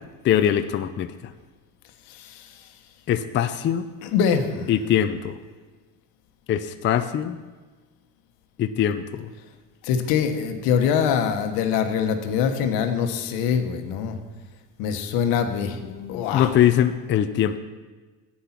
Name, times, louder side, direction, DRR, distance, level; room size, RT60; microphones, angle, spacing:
voice 1, 0.2-1.1 3.1-3.9 4.7-5.3 6.5-7.4 8.6-9.3 15.8-17.6, left 10 dB, 35° left, 9 dB, 0.4 m, -22 dB
voice 2, 2.1-2.5 4.0-4.7 9.8-14.2 14.8-15.8 16.1-16.5, left 7 dB, 85° left, 7 dB, 1.3 m, -24 dB
9.9 x 8.6 x 5.9 m, 1.3 s
cardioid pair, 145°, 35 cm